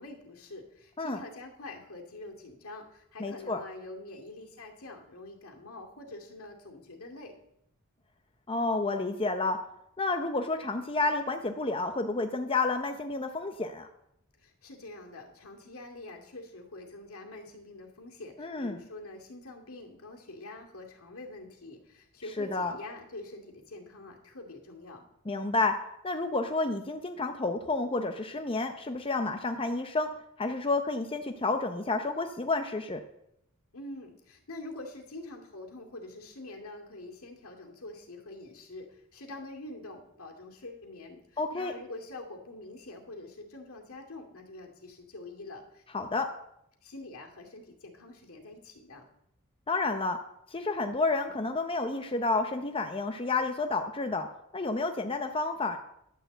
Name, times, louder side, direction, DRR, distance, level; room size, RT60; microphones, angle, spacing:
voice 1, 0.0-7.4 14.4-25.1 33.7-45.8 46.8-49.1, left 2 dB, 70° left, 2 dB, 2.4 m, -45 dB
voice 2, 3.2-3.6 8.5-9.6 10.0-13.9 18.4-18.8 22.4-22.7 25.3-25.8 26.0-30.1 30.4-33.0 41.4-41.7 45.9-46.3 49.7-50.2 50.5-54.3 54.5-55.8, left 3 dB, 25° left, 5 dB, 0.7 m, -30 dB
11.5 x 6.8 x 7.9 m, 0.79 s
head